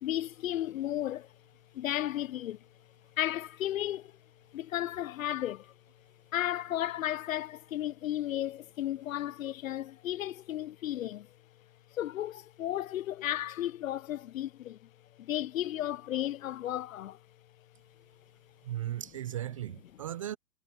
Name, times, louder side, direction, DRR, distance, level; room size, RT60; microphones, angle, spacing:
voice 1, 0.0-1.3 1.7-2.6 3.2-4.1 4.5-5.7 6.3-11.3 11.9-14.9 15.2-17.2, left 12 dB, 55° left, 0.6 m, -34 dB
voice 2, 18.6-20.4, right 12 dB, 20° right, 0.5 m, -36 dB
hypercardioid pair, 135°, 49 cm